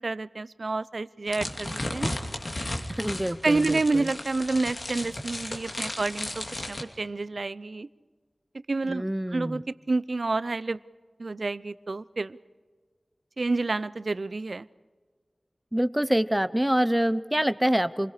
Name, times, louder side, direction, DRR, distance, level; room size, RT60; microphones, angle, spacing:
voice 1, 0.0-2.1 3.4-7.9 8.7-9.1 9.3-10.8 11.2-12.4 13.4-14.7, right 3 dB, 70° right, 17 dB, 0.5 m, -29 dB
sound 1, 1.3-6.8, left 1 dB, 60° left, 2.6 m, -34 dB
voice 2, 2.9-4.1 8.8-9.6 15.7-18.1, equal, 10° right, 14 dB, 0.7 m, -26 dB
28.5 x 21.5 x 5.0 m, 1.5 s
wide cardioid pair, 60°, 0 cm